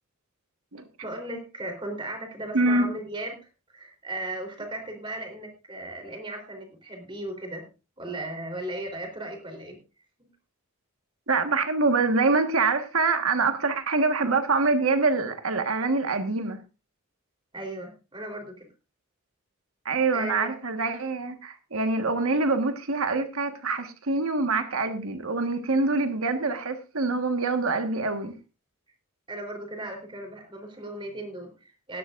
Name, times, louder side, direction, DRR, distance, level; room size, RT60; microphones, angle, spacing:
voice 1, 1.0-3.3 3.7-7.6 8.0-9.8 17.5-18.7 20.1-20.5 29.3-32.0, right 1 dB, 25° right, 3.7 m, -36 dB
voice 2, 11.3-16.6 19.8-28.3, right 3 dB, 70° right, 1.5 m, -25 dB
17.5 x 12.0 x 2.5 m
head